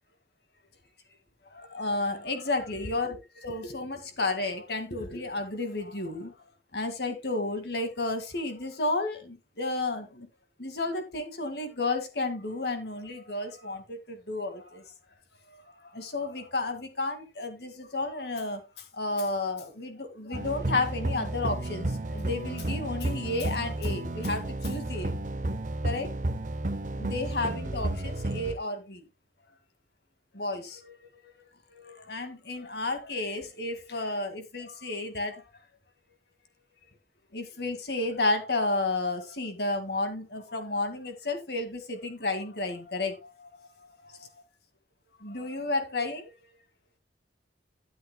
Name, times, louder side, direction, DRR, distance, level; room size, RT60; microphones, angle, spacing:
voice 1, 1.5-6.4 6.7-10.3 10.6-14.9 15.5-25.1 25.8-26.1 27.0-29.1 30.3-35.4 37.3-44.3 45.2-46.3, left 2 dB, 65° left, 2.0 m, -32 dB
sound 1, 20.3-28.6, right 1 dB, 45° right, 0.7 m, -32 dB
12.0 x 9.6 x 2.2 m
head